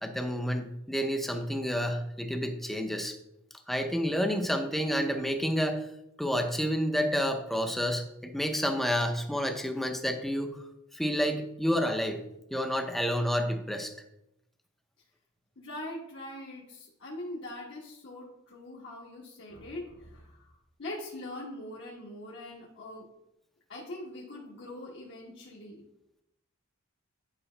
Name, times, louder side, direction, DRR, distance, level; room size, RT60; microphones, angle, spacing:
voice 1, 0.0-3.2 3.7-5.9 6.2-10.6 10.9-12.2 12.5-13.9, equal, ahead, 5 dB, 0.6 m, -29 dB
voice 2, 15.6-20.5 20.8-23.0 23.7-25.8, left 1 dB, 55° left, -4 dB, 1.3 m, -42 dB
9.8 x 4.7 x 3.3 m, 0.83 s
head